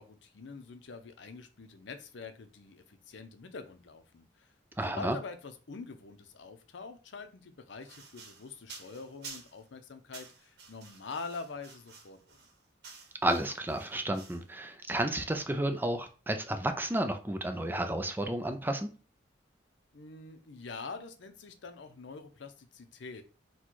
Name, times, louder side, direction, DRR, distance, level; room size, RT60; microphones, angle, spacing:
voice 1, 0.0-12.4 19.9-23.2, left 4 dB, 75° left, 9 dB, 0.6 m, -45 dB
voice 2, 4.8-5.2 13.2-18.9, right 1 dB, 10° right, 7 dB, 0.4 m, -32 dB
sound 1, 7.8-9.7 10.1-14.5, right 4 dB, 60° right, 0.9 m, -51 dB
4.2 x 2.2 x 4.5 m, 0.36 s
head